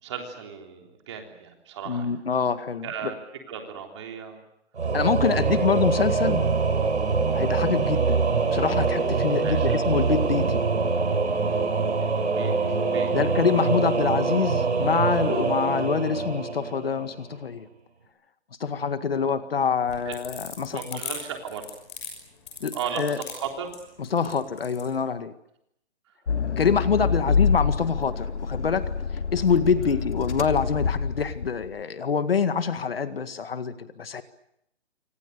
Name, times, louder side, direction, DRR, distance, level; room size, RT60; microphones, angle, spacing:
voice 1, 0.0-2.1 2.8-3.2 3.5-4.4 5.3-5.8 7.3-7.5 9.4-9.8 12.0-12.5 12.9-13.1 19.1-19.4 20.0-20.2 20.7-21.7 22.7-23.7 24.2-24.4 27.3-27.4, right 7 dB, 25° right, 3 dB, 3.6 m, -36 dB
voice 2, 1.9-3.1 4.9-6.5 7.3-8.2 8.5-10.6 13.1-17.7 18.6-21.0 22.6-23.2 24.1-25.3 26.6-28.8 29.3-34.2, left 6 dB, 55° left, 10 dB, 2.0 m, -25 dB
Singing / Musical instrument, 4.8-17.3, right 4 dB, 80° right, 6.4 m, -24 dB
sound 1, 19.8-24.9, left 7 dB, 25° left, 6.3 m, -38 dB
Accelerating revving vroom, 26.3-31.7, left 5 dB, 80° left, 2.7 m, -27 dB
27.5 x 25.0 x 6.8 m, 0.76 s
hypercardioid pair, 175°, 34 cm